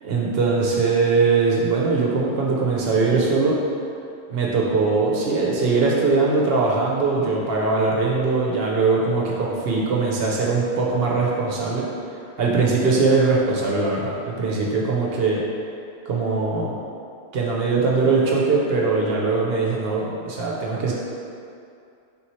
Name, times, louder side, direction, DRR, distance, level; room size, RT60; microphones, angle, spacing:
voice 1, 0.0-3.5 4.3-11.9 12.4-15.4 16.1-16.7 17.3-20.9, right 4 dB, 60° right, -3 dB, 0.7 m, -21 dB
3.5 x 3.0 x 4.1 m, 2.4 s
omnidirectional pair, 1.3 m